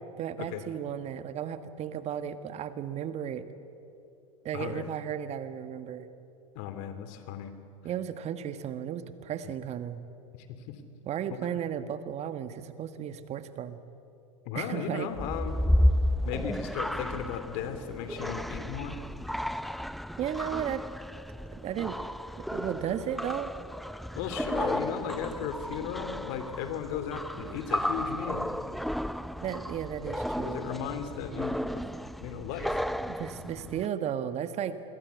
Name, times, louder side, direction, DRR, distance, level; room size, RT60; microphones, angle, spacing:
voice 1, 0.2-3.4 4.4-6.1 7.8-10.0 11.0-13.8 14.5-15.1 20.2-20.9 21.5-22.0 22.4-23.5 29.4-30.7 33.1-34.7, right 9 dB, 40° right, 11 dB, 1.5 m, -34 dB
voice 2, 4.5-4.9 6.5-7.5 9.4-9.5 10.7-10.8 11.3-11.6 14.4-15.6 16.2-19.1 24.1-28.4 30.5-31.8 32.2-32.8, left 8 dB, 60° left, 9 dB, 2.9 m, -36 dB
sound 1, 15.1-33.9, equal, ahead, 0.5 m, -33 dB
26.0 x 22.0 x 8.3 m, 2.7 s
hypercardioid pair, 90°, 17 cm